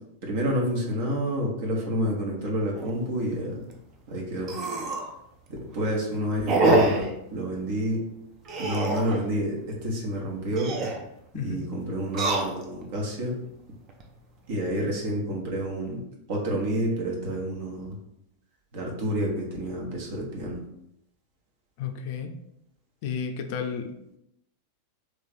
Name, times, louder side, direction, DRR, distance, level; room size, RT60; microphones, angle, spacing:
voice 1, 0.2-3.6 4.1-4.5 5.7-8.0 8.6-10.7 11.4-13.3 14.5-16.0 16.3-18.0 18.7-20.6, equal, 50° right, -1 dB, 1.2 m, -29 dB
sound 1, 2.8-2.9 3.4-3.5 3.7-3.8 4.4-5.1 5.6-5.9 6.5-7.1 8.5-9.2 10.4-11.0 12.0-12.9 13.5-14.0, right 2 dB, 35° right, 0.6 m, -25 dB
voice 2, 21.8-22.3 23.0-24.2, left 6 dB, 45° left, 6 dB, 0.4 m, -32 dB
3.1 x 3.1 x 4.0 m, 0.81 s
figure-of-eight pair, 90°, 0 cm